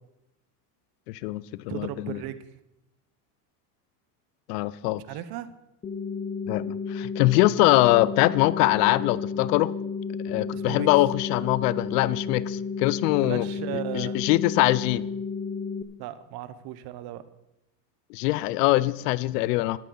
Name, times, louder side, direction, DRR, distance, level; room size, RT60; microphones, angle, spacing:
voice 1, 1.1-2.2 4.5-5.0 6.5-9.7 10.2-13.5 13.9-15.0 18.1-19.8, left 18 dB, 75° left, 0.7 m, -23 dB
voice 2, 1.7-2.5 4.9-5.5 10.5-10.9 13.2-14.2 16.0-17.2, right 13 dB, 50° right, 1.1 m, -36 dB
sound 1, 5.8-15.8, left 5 dB, 15° left, 0.7 m, -32 dB
13.0 x 12.5 x 4.0 m
supercardioid pair, 120°, 47 cm